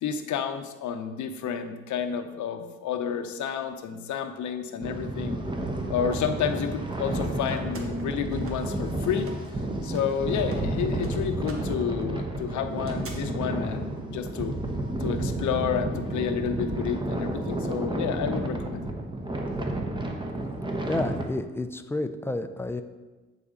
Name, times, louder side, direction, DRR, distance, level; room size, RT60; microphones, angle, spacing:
voice 1, 0.0-5.4 5.9-9.3 9.8-14.6 15.0-18.8, left 7 dB, 75° left, 8 dB, 0.7 m, -30 dB
sound 1, 4.8-21.2, right 1 dB, 15° right, 0.8 m, -31 dB
sound 2, 7.0-9.6 9.8-13.1, right 3 dB, 45° right, 1.2 m, -47 dB
voice 2, 20.8-22.8, left 2 dB, 10° left, 8 dB, 0.4 m, -30 dB
8.2 x 4.1 x 3.7 m, 1.2 s
cardioid pair, 90°, 30 cm